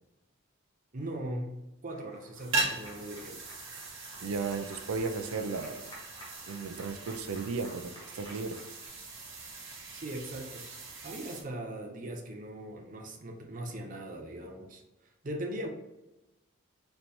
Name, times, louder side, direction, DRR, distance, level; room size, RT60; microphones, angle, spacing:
voice 1, 0.9-1.5 1.8-3.4 9.9-10.7 11.0-14.8 15.2-15.7, right 1 dB, 40° right, 1 dB, 0.6 m, -39 dB
Applause, 1.9-8.9, equal, 20° left, 1.2 m, -53 dB
sound 1, 2.3-11.4, right 3 dB, 60° right, 1.0 m, -39 dB
voice 2, 4.2-5.9 6.4-8.6, right 4 dB, 85° right, 7 dB, 0.5 m, -35 dB
4.3 x 3.3 x 2.7 m, 0.99 s
head